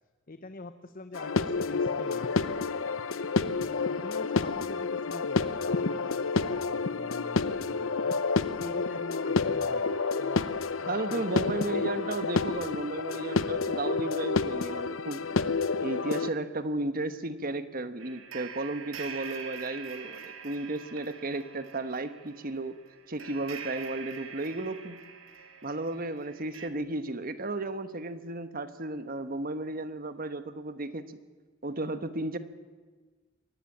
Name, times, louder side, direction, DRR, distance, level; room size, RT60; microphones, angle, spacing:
voice 1, 0.3-2.7 3.4-12.2 15.8-15.9, left 2 dB, 45° left, 10 dB, 0.8 m, -45 dB
sound 1, 1.1-16.3, left 4 dB, 80° left, 0.8 m, -29 dB
voice 2, 10.9-15.2 15.8-22.8 23.1-25.0 25.6-31.2 31.6-32.4, right 2 dB, 45° right, 11 dB, 1.2 m, -34 dB
sound 2, 18.0-26.7, right 7 dB, 80° right, 1.9 m, -44 dB
22.5 x 18.0 x 8.8 m, 1.4 s
head